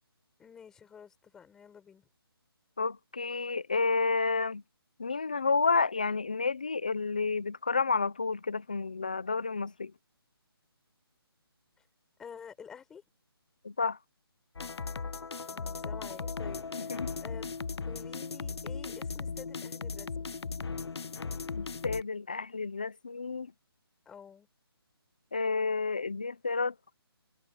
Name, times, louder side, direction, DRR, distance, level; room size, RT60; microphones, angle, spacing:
voice 1, 0.4-2.0 12.2-13.0 15.5-17.5 17.9-20.4 24.1-24.5, left 7 dB, 5° left, 6.0 m, -50 dB
voice 2, 2.8-4.6 5.0-9.9 13.6-14.0 16.8-17.1 21.5-23.5 25.3-26.7, left 4 dB, 20° left, 0.5 m, -30 dB
sound 1, 14.6-22.0, left 4 dB, 90° left, 0.8 m, -37 dB
hypercardioid pair, 180°, 13 cm